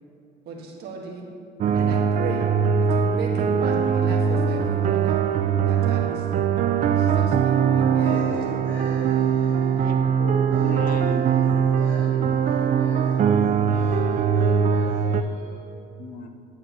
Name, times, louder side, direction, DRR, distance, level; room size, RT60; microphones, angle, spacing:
voice 1, 0.4-1.3 1.7-2.5 2.9-6.5 6.8-8.1, right 3 dB, 70° right, -1 dB, 1.7 m, -36 dB
sound 1, 1.6-15.2, right 7 dB, 50° right, 0.4 m, -21 dB
voice 2, 8.0-9.9 10.5-15.7, equal, 15° left, -8 dB, 1.8 m, -40 dB
voice 3, 9.8-11.2 12.0-12.4 16.0-16.3, left 4 dB, 60° left, 7 dB, 0.8 m, -36 dB
9.8 x 8.7 x 3.1 m, 2.6 s
cardioid pair, 110°, 17 cm